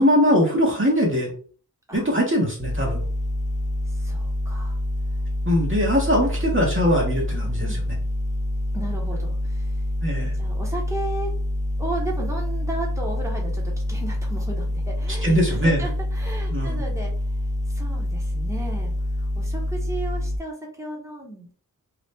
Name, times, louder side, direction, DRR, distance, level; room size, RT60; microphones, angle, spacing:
voice 1, 0.0-1.3 1.9-3.0 5.5-6.3 6.5-7.8 10.0-10.3 15.2-15.8 16.5-16.8, equal, 35° right, -2 dB, 1.0 m, -21 dB
sound 1, 2.6-20.4, left 1 dB, 20° left, 0.3 m, -26 dB
voice 2, 3.9-4.8 7.3-7.8 8.7-9.8 10.3-11.3 11.8-17.1 17.7-21.5, right 2 dB, 10° right, -1 dB, 1.1 m, -35 dB
2.8 x 2.4 x 3.5 m, 0.42 s
wide cardioid pair, 40°, 34 cm